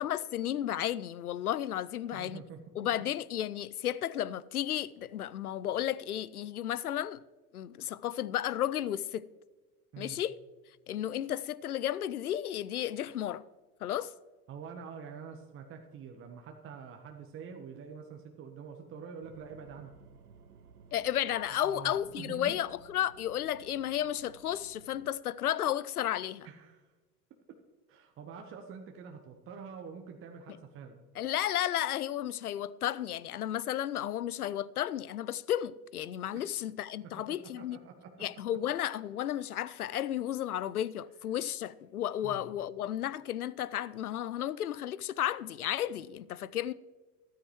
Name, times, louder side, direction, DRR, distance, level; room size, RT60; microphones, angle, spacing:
voice 1, 0.0-2.4 2.8-7.2 7.5-9.3 10.0-10.4 10.9-13.4 13.8-14.1 20.9-26.5 31.2-37.8 38.2-46.7, left 11 dB, 80° left, 0.6 m, -33 dB
voice 2, 2.1-2.6 9.9-10.2 14.5-19.9 21.5-22.6 26.4-26.8 27.5-27.6 27.9-31.0 36.3-36.4 37.0-38.2 42.2-42.5, right 6 dB, 30° right, 1.1 m, -46 dB
sound 1, 19.2-25.1, right 5 dB, 85° right, 0.8 m, -57 dB
13.5 x 13.0 x 3.1 m
figure-of-eight pair, 80°, 44 cm